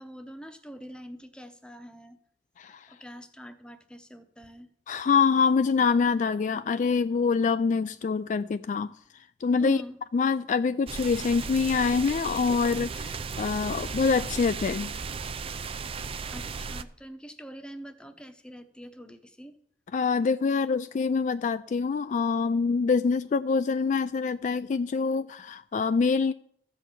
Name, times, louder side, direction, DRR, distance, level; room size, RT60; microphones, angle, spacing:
voice 1, 0.0-2.2 2.9-4.7 9.6-10.0 16.3-19.5, equal, 5° left, 0.8 m, -43 dB
voice 2, 4.9-8.9 9.4-9.8 10.1-14.9 19.9-26.3, left 5 dB, 45° left, 0.3 m, -25 dB
sound 1, 10.9-16.8, right 5 dB, 35° right, 0.4 m, -35 dB
13.5 x 4.5 x 8.3 m
head